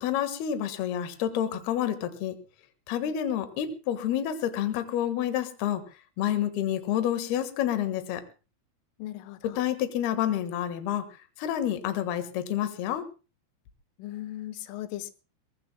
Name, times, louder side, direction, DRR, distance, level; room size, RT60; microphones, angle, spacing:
voice 1, 0.0-2.4 2.9-5.8 6.2-8.2 9.6-11.0 11.4-13.1, left 10 dB, 65° left, 10 dB, 3.2 m, -29 dB
voice 2, 9.0-9.6 14.0-15.1, left 14 dB, 90° left, 12 dB, 3.6 m, -38 dB
22.5 x 20.5 x 2.2 m, 0.32 s
omnidirectional pair, 5.6 m